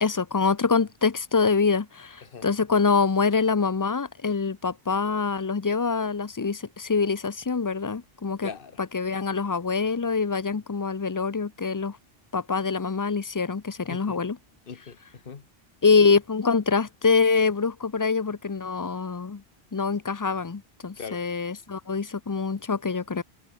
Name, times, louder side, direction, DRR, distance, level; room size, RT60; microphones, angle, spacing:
voice 1, 0.0-8.5 8.9-12.0 12.3-14.4 15.8-19.4 19.7-23.2, left 5 dB, 30° left, 0.4 m, -25 dB
voice 2, 8.4-8.8 13.9-14.2 14.7-15.5 21.0-21.2, left 6 dB, 60° left, 1.4 m, -40 dB
omnidirectional pair, 1.1 m